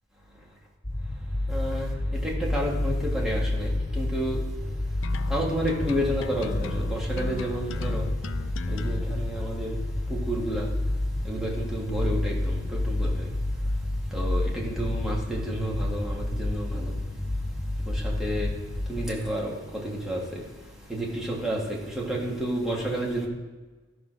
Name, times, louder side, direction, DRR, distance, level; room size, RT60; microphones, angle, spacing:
sound 1, 0.8-19.1, left 1 dB, 25° left, 2.2 m, -29 dB
voice 1, 1.5-1.9 2.2-4.4 5.3-8.0 8.7-9.7 10.1-10.7 11.2-13.3 14.1-16.9 18.0-18.5 18.9-20.4 20.9-21.6 22.0-23.3, right 1 dB, 5° right, -4 dB, 2.1 m, -30 dB
sound 2, 5.0-9.0, left 4 dB, 85° left, 0.5 m, -37 dB
13.5 x 5.0 x 6.2 m, 1.3 s
head